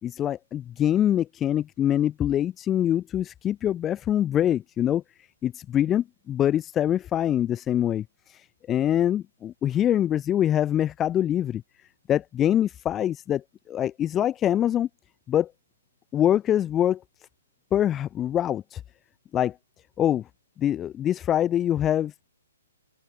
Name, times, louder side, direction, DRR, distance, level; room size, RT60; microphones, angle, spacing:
voice 1, 0.0-5.0 5.4-11.6 12.1-14.9 15.3-15.5 16.1-17.0 17.7-18.8 19.3-19.5 20.0-20.2 20.6-22.1, left 11 dB, 15° left, 4.2 m, -24 dB
open air
hypercardioid pair, 150°, 0 cm